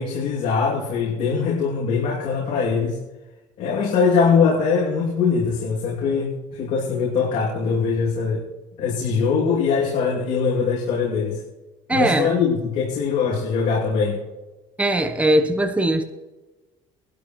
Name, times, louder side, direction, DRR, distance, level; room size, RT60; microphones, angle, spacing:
voice 1, 0.0-3.0 3.6-8.4 8.8-11.4 11.9-14.2, left 5 dB, 65° left, -4 dB, 2.8 m, -22 dB
voice 2, 11.9-12.3 14.8-16.0, right 1 dB, 10° right, 7 dB, 1.0 m, -20 dB
22.0 x 12.0 x 3.2 m, 1.1 s
cardioid pair, 120°, 13 cm